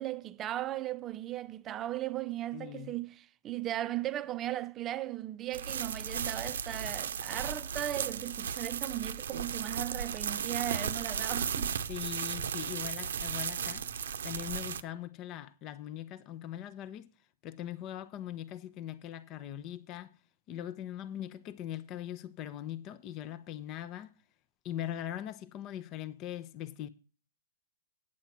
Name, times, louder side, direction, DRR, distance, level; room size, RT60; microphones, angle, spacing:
voice 1, 0.0-11.8, right 13 dB, 25° right, 0.5 m, -37 dB
voice 2, 2.5-3.0 11.9-13.9 14.2-17.1 17.4-20.1 20.5-24.1 24.6-26.9, left 11 dB, 30° left, 0.6 m, -41 dB
sound 1, 5.5-14.8, right 7 dB, 80° right, 0.7 m, -35 dB
9.1 x 7.4 x 5.8 m
hypercardioid pair, 145°, 0 cm